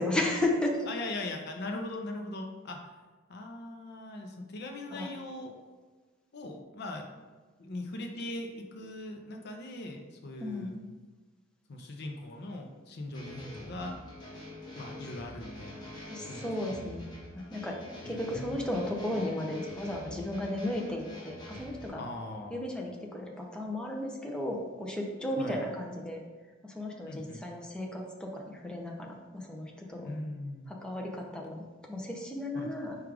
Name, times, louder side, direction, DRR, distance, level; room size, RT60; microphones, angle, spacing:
voice 1, 0.0-0.8 4.9-5.1 10.4-10.8 16.1-17.1 17.3-17.8 18.0-22.0 22.5-26.2 26.6-30.1 30.7-33.0, left 1 dB, 5° left, -1 dB, 0.5 m, -34 dB
voice 2, 0.9-2.9 3.3-5.5 6.3-7.1 7.6-10.7 11.7-14.0 14.7-15.9 16.3-16.8 18.0-18.6 22.0-22.7 25.4-25.6 27.1-27.4 30.0-30.7 32.5-32.7, left 2 dB, 55° left, 3 dB, 0.5 m, -40 dB
sound 1, 13.1-21.9, left 1 dB, 20° left, 1.1 m, -45 dB
4.8 x 2.4 x 4.7 m, 1.3 s
head